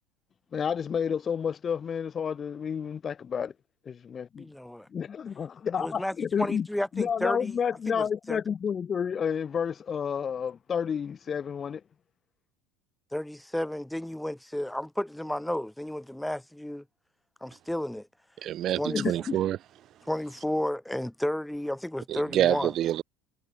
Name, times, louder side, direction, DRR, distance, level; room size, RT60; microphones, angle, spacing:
voice 1, 0.5-3.5 3.9-4.4 4.9-6.7 7.0-11.8 18.9-19.4, left 7 dB, 35° left, 0.6 m, -30 dB
voice 2, 4.4-4.9 5.8-7.5 7.9-8.4 13.1-16.8 17.4-18.1 18.8-19.0 20.0-22.7, left 1 dB, 5° left, 1.3 m, -32 dB
voice 3, 18.4-19.6 22.1-23.0, right 12 dB, 50° right, 1.1 m, -27 dB
supercardioid pair, 95°, 0 cm